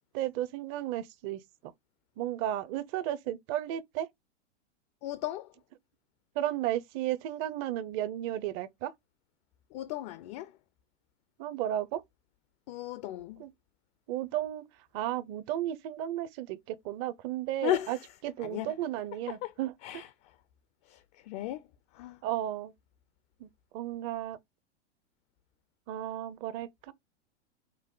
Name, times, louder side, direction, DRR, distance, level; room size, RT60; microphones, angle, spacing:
voice 1, 0.1-1.7 2.2-4.1 6.4-8.9 11.4-12.0 13.4-13.5 14.1-14.6 14.9-18.0 18.2-19.7 22.2-22.7 23.4-24.4 25.9-26.9, right 13 dB, 35° right, 0.6 m, -34 dB
voice 2, 5.0-5.5 9.7-10.5 12.7-13.4 17.6-18.0 18.4-18.7 19.3-19.5 19.8-20.1 20.9-21.6 21.9-22.2, left 13 dB, 40° left, 0.4 m, -35 dB
5.5 x 2.0 x 3.7 m
hypercardioid pair, 115°, 34 cm